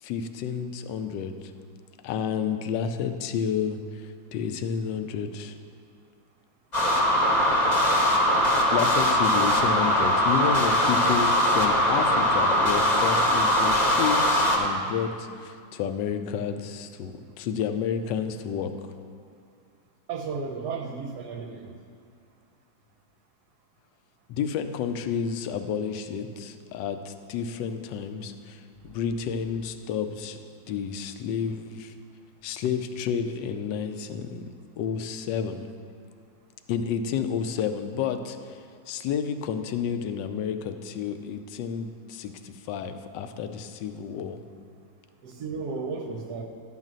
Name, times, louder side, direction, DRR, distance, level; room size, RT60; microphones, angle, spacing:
voice 1, 0.0-1.4 2.0-5.5 8.7-18.7 24.3-30.4 30.7-31.9 32.4-34.5 34.8-35.7 36.7-44.4, left 7 dB, 75° left, 8 dB, 1.2 m, -30 dB
sound 1, 6.7-14.6, equal, 30° left, 0.9 m, -21 dB
voice 2, 20.1-21.8 45.2-46.5, right 4 dB, 70° right, 4 dB, 1.1 m, -34 dB
11.5 x 4.1 x 7.4 m, 2.2 s
omnidirectional pair, 2.0 m